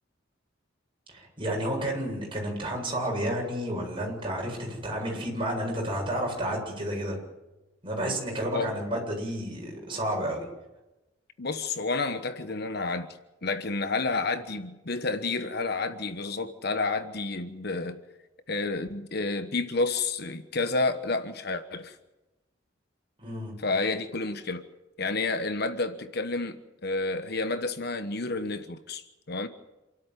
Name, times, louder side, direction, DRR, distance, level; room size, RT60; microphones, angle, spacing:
voice 1, 1.1-7.2 7.8-10.5 23.2-23.5, right 1 dB, 25° right, 8.0 m, -31 dB
voice 2, 11.4-18.0 18.5-22.0 23.6-24.6 25.0-29.5, left 3 dB, 55° left, 1.2 m, -30 dB
28.0 x 13.0 x 9.3 m
head